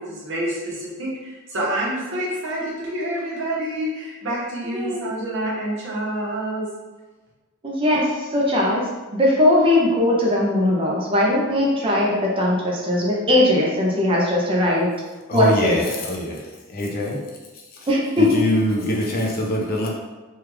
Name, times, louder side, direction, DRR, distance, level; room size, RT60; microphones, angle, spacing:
voice 1, 0.0-6.7, right 1 dB, 65° right, -6 dB, 1.1 m, -27 dB
voice 2, 4.6-5.1 7.6-8.8 9.2-14.9 15.3-15.8 17.9-18.4, left 1 dB, 25° right, -4 dB, 0.6 m, -19 dB
voice 3, 15.3-17.2 18.2-19.9, equal, 45° left, -2 dB, 0.6 m, -23 dB
3.4 x 2.3 x 3.1 m, 1.2 s
head